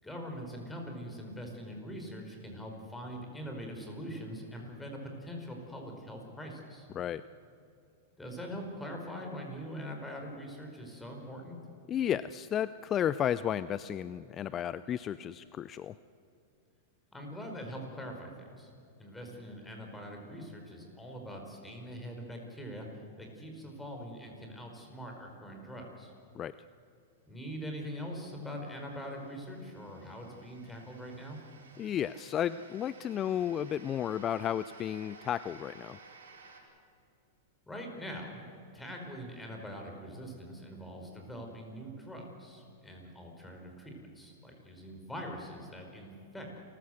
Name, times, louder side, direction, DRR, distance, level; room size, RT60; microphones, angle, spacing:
voice 1, 0.0-6.9 8.2-11.6 17.1-18.7 19.0-22.9 23.2-26.1 27.3-31.4 37.7-38.4 38.7-46.5, equal, 10° left, 2 dB, 5.0 m, -43 dB
voice 2, 11.9-16.0 26.3-26.5 31.8-36.0, left 10 dB, 30° left, 16 dB, 0.5 m, -33 dB
sound 1, 28.2-36.6, right 4 dB, 85° right, 4.8 m, -56 dB
29.0 x 14.5 x 7.9 m, 2.6 s
hypercardioid pair, 115°, 0 cm